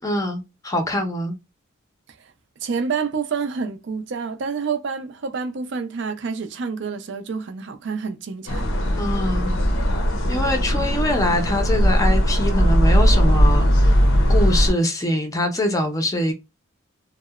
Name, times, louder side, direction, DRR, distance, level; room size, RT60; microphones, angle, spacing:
voice 1, 0.0-1.4 9.0-9.5 10.3-14.0 14.3-16.3, left 1 dB, 15° left, 0.5 m, -24 dB
voice 2, 2.6-8.6, right 5 dB, 60° right, 0.4 m, -28 dB
sound 1, 8.5-14.7, equal, 75° left, 0.5 m, -18 dB
2.7 x 2.0 x 2.3 m
head